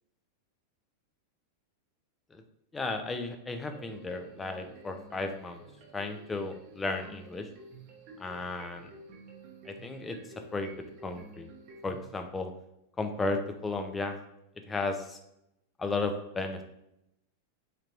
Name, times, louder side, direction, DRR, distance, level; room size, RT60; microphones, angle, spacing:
voice 1, 2.7-5.6 5.9-7.5 8.2-8.9 9.7-10.2 10.5-10.7 11.0-11.5 11.8-12.5 13.0-14.2 14.7-15.2 15.8-16.6, left 3 dB, 15° left, 6 dB, 0.4 m, -34 dB
sound 1, 3.7-12.0, right 2 dB, 45° right, 0.7 m, -51 dB
3.4 x 2.8 x 2.9 m, 0.83 s
figure-of-eight pair, 90°, 0 cm